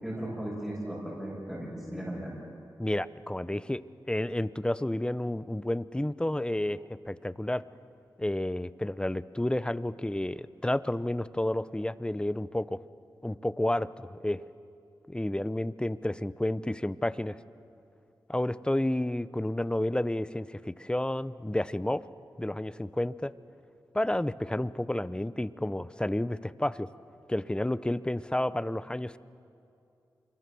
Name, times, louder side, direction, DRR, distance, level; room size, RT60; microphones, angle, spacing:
voice 1, 0.0-2.3, right 1 dB, 5° right, -6 dB, 7.3 m, -36 dB
voice 2, 2.8-3.8 4.1-7.6 8.2-12.8 13.2-14.5 15.1-17.4 18.3-22.0 22.4-23.3 23.9-26.9 27.3-29.2, left 1 dB, 10° left, 16 dB, 0.7 m, -30 dB
25.5 x 22.0 x 7.0 m, 2.6 s
cardioid pair, 45°, 8 cm